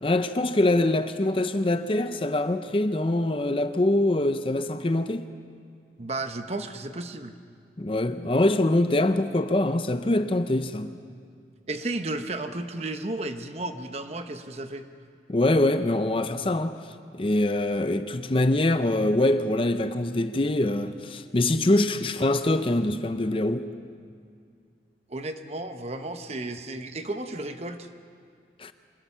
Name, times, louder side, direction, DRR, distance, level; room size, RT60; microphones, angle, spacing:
voice 1, 0.0-5.3 7.8-10.9 15.3-16.8 17.1-23.7 28.6-28.7, left 1 dB, 30° left, 0.6 m, -24 dB
voice 2, 6.0-7.4 11.7-14.9 25.1-27.9, right 2 dB, 35° right, 0.9 m, -33 dB
25.0 x 21.0 x 5.7 m
head